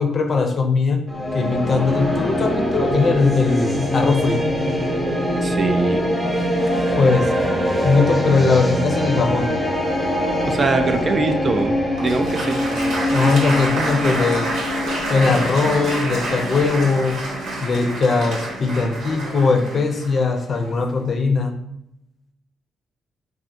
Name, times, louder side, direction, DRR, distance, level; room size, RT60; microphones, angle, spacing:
voice 1, 0.0-4.5 7.0-7.3 7.8-9.5 13.1-14.5 15.1-17.3 17.6-21.6, left 4 dB, 45° left, 5 dB, 0.5 m, -20 dB
sound 1, 1.1-19.3, equal, 10° right, 0.8 m, -23 dB
voice 2, 5.4-6.0 10.4-12.6, right 3 dB, 40° right, 6 dB, 0.3 m, -23 dB
Applause, 12.0-20.9, right 2 dB, 80° right, 1.0 m, -28 dB
3.4 x 2.4 x 2.6 m, 0.80 s
cardioid pair, 90°, 0 cm